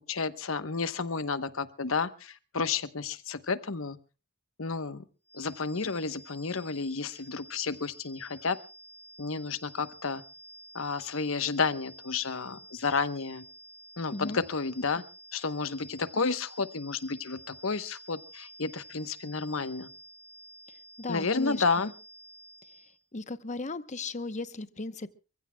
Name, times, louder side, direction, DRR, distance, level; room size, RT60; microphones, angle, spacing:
voice 1, 0.1-4.0 4.6-5.0 5.3-8.6 9.2-10.2 10.7-13.5 14.0-15.0 15.3-19.9 21.1-21.9, left 4 dB, 80° left, 12 dB, 1.0 m, -31 dB
sound 1, 5.3-23.0, equal, 10° left, 3.9 m, -51 dB
voice 2, 14.1-14.4 21.0-21.6 23.1-25.2, left 3 dB, 35° left, 12 dB, 0.9 m, -36 dB
29.5 x 15.5 x 2.3 m, 0.33 s
head